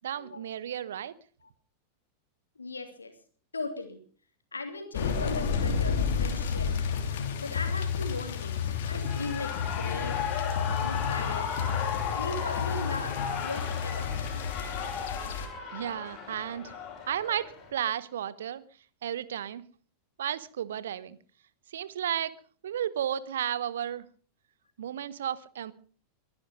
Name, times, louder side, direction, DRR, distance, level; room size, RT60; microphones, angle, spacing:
voice 1, 0.0-1.2 15.7-16.8 17.1-18.6 19.0-19.6 20.2-21.2 21.7-22.3 22.6-24.1 24.8-25.7, right 10 dB, 60° right, 19 dB, 0.9 m, -33 dB
voice 2, 2.6-3.1 3.5-4.0 4.5-6.8 7.4-8.6 8.9-10.4 10.8-11.7 12.1-14.2, left 3 dB, 75° left, 6 dB, 3.0 m, -38 dB
sound 1, 4.9-15.5, left 6 dB, 55° left, 3.1 m, -31 dB
Shout / Cheering, 8.8-17.7, left 7 dB, 35° left, 6.6 m, -36 dB
23.0 x 10.5 x 5.2 m, 0.43 s
figure-of-eight pair, 90°, 0 cm